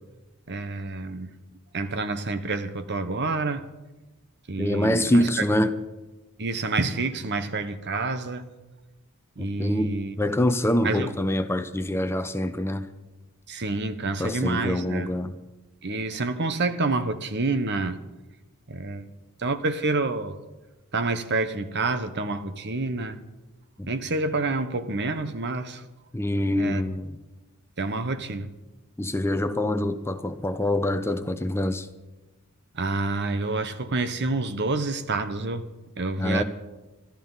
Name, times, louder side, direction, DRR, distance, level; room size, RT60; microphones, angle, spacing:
voice 1, 0.5-1.4 1.7-3.7 4.5-5.7 6.4-8.5 9.4-10.1 10.8-11.1 13.5-15.1 15.8-18.0 18.7-19.1 19.4-20.4 20.9-23.2 23.9-25.8 26.6-26.8 27.8-28.5 32.7-35.7 36.0-36.4, right 3 dB, 55° right, 1.1 m, -28 dB
voice 2, 4.6-5.7 9.4-12.9 14.2-15.4 23.8-23.9 26.1-27.2 29.0-31.9 36.2-36.4, left 1 dB, 10° left, 0.7 m, -25 dB
25.5 x 13.0 x 4.1 m
head